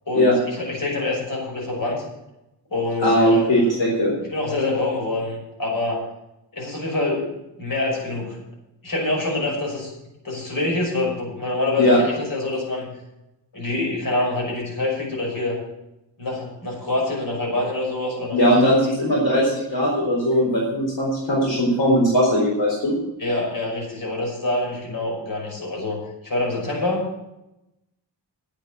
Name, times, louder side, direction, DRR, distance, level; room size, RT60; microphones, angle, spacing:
voice 1, 0.7-2.0 2.7-3.5 4.3-6.0 6.5-7.3 7.6-8.4 8.8-9.9 10.2-12.9 13.5-15.6 16.2-18.8 23.2-27.1, left 2 dB, 50° left, -1 dB, 5.8 m, -26 dB
voice 2, 3.0-4.1 11.8-12.0 18.3-23.0, equal, 75° left, -3 dB, 4.0 m, -19 dB
10.5 x 8.4 x 7.8 m, 0.90 s
wide cardioid pair, 115°, 44 cm